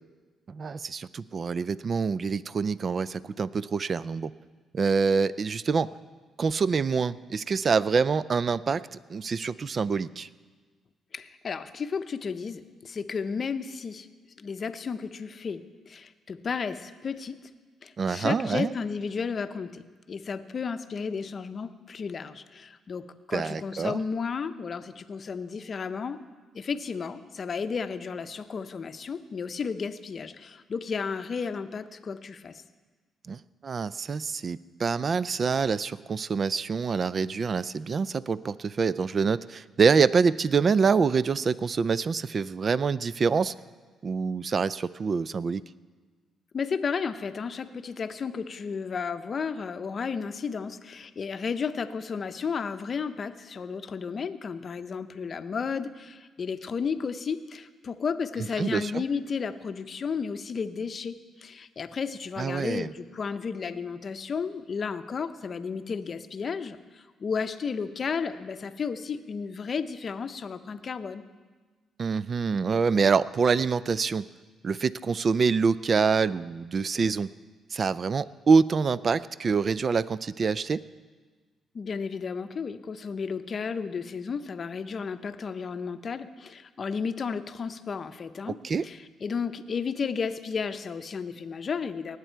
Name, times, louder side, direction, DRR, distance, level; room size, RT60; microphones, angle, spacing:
voice 1, 0.5-4.3 4.7-5.9 6.4-10.3 18.0-18.7 23.3-24.0 33.3-43.5 44.0-45.6 58.6-59.0 62.4-62.9 72.0-74.2 74.6-77.3 77.7-80.8 88.6-88.9, right 5 dB, 45° right, 18 dB, 0.4 m, -26 dB
voice 2, 11.1-14.1 14.4-15.6 15.9-17.4 17.8-26.2 26.5-32.6 46.5-71.2 81.7-88.6 88.8-92.2, left 5 dB, 45° left, 10 dB, 0.6 m, -33 dB
19.0 x 8.2 x 4.5 m, 1.4 s
cardioid pair, 90°, 0 cm